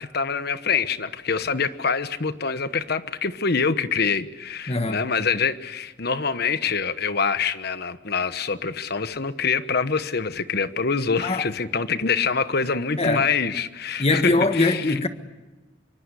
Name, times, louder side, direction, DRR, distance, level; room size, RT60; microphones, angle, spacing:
voice 1, 0.0-15.0, left 5 dB, 55° left, 1.1 m, -25 dB
voice 2, 4.7-5.0 11.2-11.5 13.0-13.3 14.0-15.1, left 2 dB, 35° left, 1.5 m, -22 dB
26.0 x 24.0 x 8.3 m
head